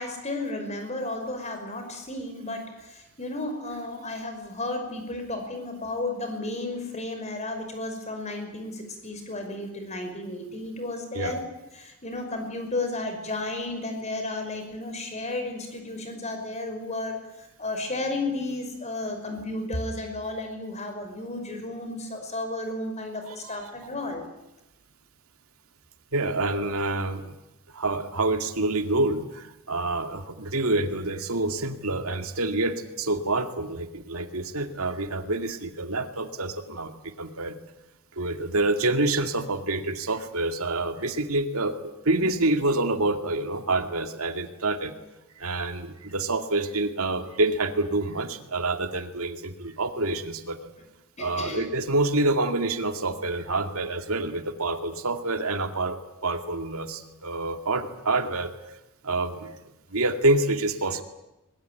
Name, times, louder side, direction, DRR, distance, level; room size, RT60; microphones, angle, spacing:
voice 1, 0.0-11.4 11.7-24.2 26.5-26.7 51.2-51.7, left 2 dB, 30° left, 6 dB, 5.6 m, -33 dB
voice 2, 23.2-23.7 26.1-27.4 27.7-37.6 38.2-44.9 45.4-50.7 51.2-56.0 56.2-58.5 59.0-59.5 59.9-61.0, right 2 dB, 75° right, 7 dB, 2.3 m, -27 dB
22.0 x 21.5 x 9.3 m, 0.92 s
head